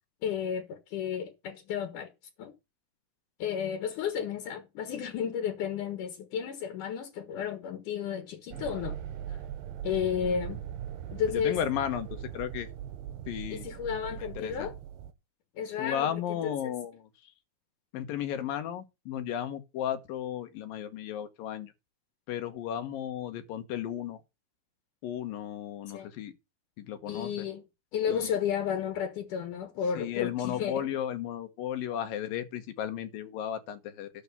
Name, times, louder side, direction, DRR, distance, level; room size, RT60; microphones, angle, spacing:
voice 1, 0.2-2.1 2.4-2.5 3.4-9.0 9.3-9.4 9.8-10.6 11.1-11.6 13.5-14.7 15.6-16.7 25.9-26.1 27.1-27.6 27.9-30.9, left 8 dB, 70° left, 2.8 m, -32 dB
sound 1, 8.5-15.1, right 10 dB, 85° right, 2.7 m, -40 dB
voice 2, 11.3-12.7 13.3-13.6 14.2-14.7 15.8-17.1 17.9-21.7 22.3-24.2 25.0-26.3 26.8-27.5 28.1-28.3 30.0-34.1, left 10 dB, 90° left, 3.0 m, -34 dB
12.0 x 4.8 x 7.0 m
omnidirectional pair, 3.9 m